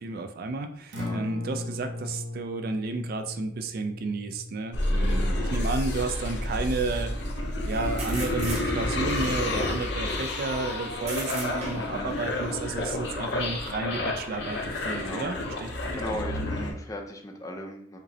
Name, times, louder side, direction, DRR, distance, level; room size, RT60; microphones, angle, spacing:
voice 1, 0.0-7.1 7.6-15.7, right 3 dB, 50° right, 7 dB, 0.3 m, -32 dB
Acoustic guitar, 0.9-9.0, left 2 dB, 65° right, 0.7 m, -39 dB
sound 1, 4.7-16.7, left 1 dB, 60° left, 0.6 m, -30 dB
voice 2, 5.0-5.4 11.8-12.2 14.9-15.4 15.9-18.0, left 1 dB, 15° left, 1 dB, 0.5 m, -37 dB
sound 2, 5.6-5.7 8.0-9.1 11.0-12.1, right 3 dB, 35° right, 0.9 m, -37 dB
5.1 x 2.0 x 2.7 m, 0.67 s
head